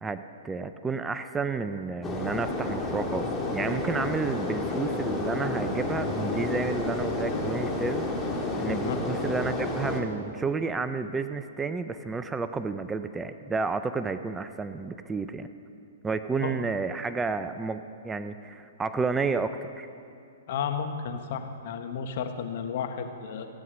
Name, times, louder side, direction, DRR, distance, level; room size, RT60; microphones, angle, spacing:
voice 1, 0.0-3.3 3.5-8.1 8.3-15.5 16.0-19.9, right 4 dB, 10° right, 10 dB, 0.4 m, -31 dB
sound 1, 2.0-10.0, left 2 dB, 15° left, 1.7 m, -30 dB
voice 2, 8.7-9.0 16.4-16.6 20.5-23.5, left 7 dB, 55° left, 7 dB, 1.2 m, -33 dB
15.5 x 9.4 x 6.3 m, 2.5 s
hypercardioid pair, 130°, 0 cm